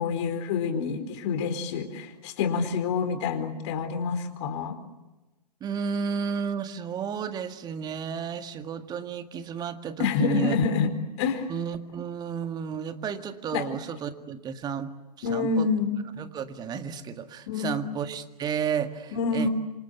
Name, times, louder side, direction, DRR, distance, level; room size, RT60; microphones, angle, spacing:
voice 1, 0.0-4.8 10.0-10.9 11.2-11.5 13.5-13.7 15.2-15.9 17.5-17.8 19.1-19.5, left 5 dB, 45° left, 7 dB, 4.3 m, -27 dB
voice 2, 5.6-10.6 11.5-14.9 15.3-15.7 16.2-19.5, right 7 dB, 20° right, 8 dB, 1.8 m, -32 dB
28.0 x 25.5 x 8.0 m, 1.1 s
figure-of-eight pair, 120°, 21 cm